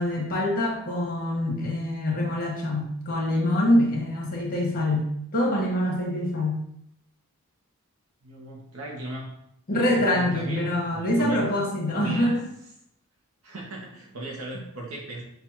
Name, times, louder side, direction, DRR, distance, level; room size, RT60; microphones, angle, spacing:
voice 1, 0.0-6.6 9.7-12.4, left 1 dB, 40° left, -2 dB, 1.3 m, -25 dB
voice 2, 8.2-9.3 9.7-11.5 11.9-12.4 13.4-15.2, right 1 dB, 75° right, -1 dB, 0.8 m, -37 dB
6.4 x 2.4 x 2.8 m, 0.75 s
head